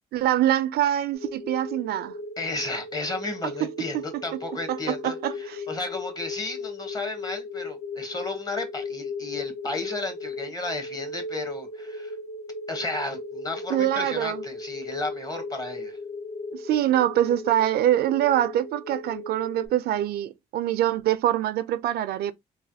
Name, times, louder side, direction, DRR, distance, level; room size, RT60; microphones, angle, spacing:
voice 1, 0.1-2.1 3.6-3.7 3.9-4.2 4.7-5.3 13.7-14.4 16.5-22.3, right 12 dB, 80° right, 0.4 m, -24 dB
sound 1, 1.1-19.7, left 3 dB, 70° left, 1.6 m, -37 dB
voice 2, 2.4-12.2 12.7-16.0, left 2 dB, 25° left, 1.1 m, -33 dB
3.2 x 2.2 x 2.7 m
cardioid pair, 85°, 16 cm